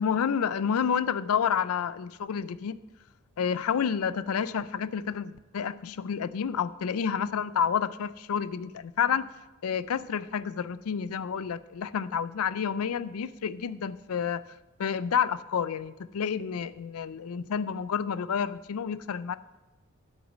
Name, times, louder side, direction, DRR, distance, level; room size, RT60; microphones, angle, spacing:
voice 1, 0.0-2.8 3.4-9.3 9.6-14.4 14.8-19.4, left 7 dB, 80° left, 17 dB, 0.4 m, -29 dB
9.0 x 6.3 x 7.2 m, 1.1 s
head